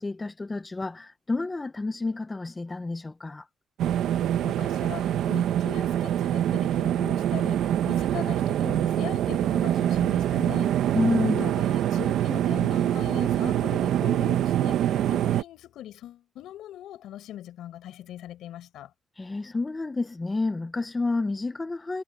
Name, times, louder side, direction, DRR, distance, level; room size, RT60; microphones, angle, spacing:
voice 1, 0.0-3.4 10.9-11.5 19.2-22.0, left 3 dB, 15° left, 0.5 m, -29 dB
sound 1, 3.8-15.4, right 11 dB, 80° right, 1.1 m, -25 dB
voice 2, 4.4-11.0 11.2-18.9, left 12 dB, 80° left, 6.6 m, -41 dB
cardioid pair, 170°, 0 cm